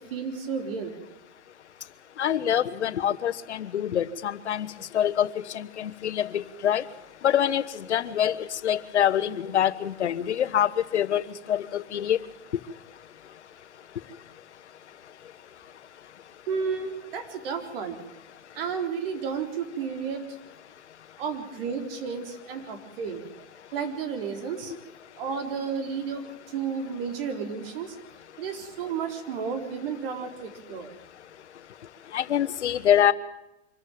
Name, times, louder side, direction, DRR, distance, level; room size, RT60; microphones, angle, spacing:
voice 1, 0.1-0.9 16.5-18.0 18.5-20.2 21.2-23.2 23.7-24.7 25.2-27.9 28.4-30.9, right 6 dB, 55° right, 6 dB, 4.0 m, -32 dB
voice 2, 2.2-6.8 7.2-12.2 12.5-12.6 32.1-33.1, left 10 dB, 90° left, 12 dB, 1.3 m, -25 dB
25.0 x 14.0 x 9.2 m, 0.91 s
hypercardioid pair, 145°, 33 cm